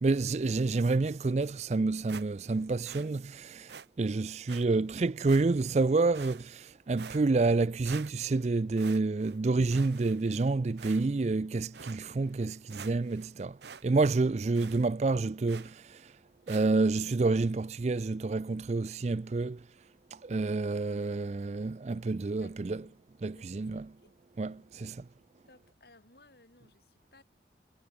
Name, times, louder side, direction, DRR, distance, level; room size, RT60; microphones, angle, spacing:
voice 1, 0.0-3.7 4.0-13.5 13.8-15.7 16.5-19.6 20.2-22.8 23.2-23.8 24.4-25.0, right 3 dB, 40° right, 0.4 m, -28 dB
sound 1, 2.1-2.6 2.8-3.1 3.7-3.9 4.5-4.6 5.3-5.7 6.1-6.7 7.0-7.6 7.8-8.4 8.8-9.4 9.7-10.4 10.8-11.3 11.7-12.0 12.4-12.5 12.7-13.3 13.6-13.8 14.1-14.2 14.5-14.8 15.5-15.8 16.5-16.7, right 6 dB, 75° right, 0.9 m, -47 dB
voice 2, 22.4-23.0 23.3-24.1 24.4-24.7 25.0-25.1 25.5-27.2, left 2 dB, 60° left, 5.0 m, -61 dB
head